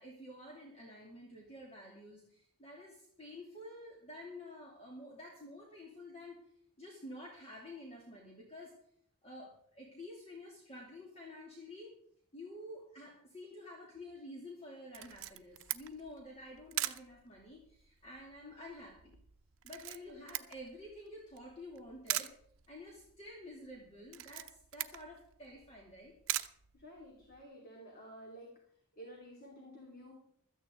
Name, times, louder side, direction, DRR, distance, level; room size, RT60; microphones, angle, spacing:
voice 1, 0.0-6.4 6.8-8.7 9.2-11.9 12.3-19.2 19.6-22.4 22.7-26.1, left 1 dB, 30° left, -2 dB, 2.7 m, -50 dB
Camera, 14.9-27.4, right 14 dB, 60° right, 0.8 m, -43 dB
voice 2, 26.7-28.5 29.0-30.1, equal, 45° left, -1 dB, 2.8 m, -52 dB
16.0 x 13.5 x 3.8 m, 0.67 s
head